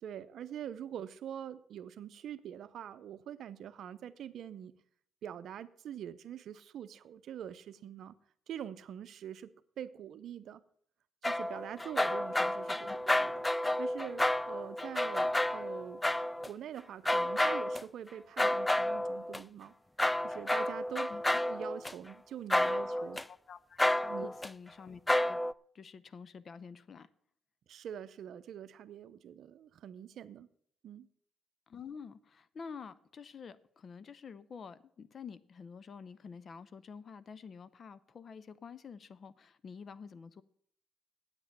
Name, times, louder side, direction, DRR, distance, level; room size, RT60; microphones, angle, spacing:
voice 1, 0.0-4.7 5.2-8.2 8.5-10.6 11.2-13.5 13.8-16.0 16.5-19.7 20.2-21.1 21.5-23.2 24.0-24.3 27.7-30.5 30.8-31.1, right 9 dB, 70° right, 0.6 m, -44 dB
sound 1, 11.2-16.5 17.1-17.8 18.4-19.4 20.0-21.9 22.5-23.2 23.8-24.5 25.1-25.5, left 1 dB, 10° left, 0.3 m, -31 dB
voice 2, 21.1-21.4 22.7-23.8 24.2-25.0 25.3-25.4 25.7-27.1 31.7-40.4, left 6 dB, 50° left, 0.6 m, -49 dB
8.8 x 8.1 x 7.3 m
cardioid pair, 90°, 0 cm